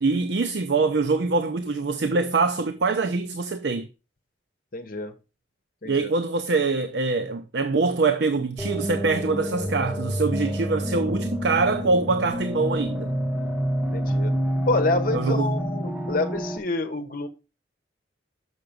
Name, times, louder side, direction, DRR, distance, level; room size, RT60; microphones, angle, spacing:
voice 1, 0.0-3.9 5.8-13.2 15.1-15.5, right 3 dB, 65° right, 0.5 m, -24 dB
voice 2, 4.7-5.2 5.8-6.1 13.9-14.3 14.6-17.3, left 2 dB, 50° left, 1.0 m, -27 dB
sound 1, 8.6-16.6, equal, 5° right, 0.9 m, -28 dB
6.5 x 5.7 x 5.1 m
head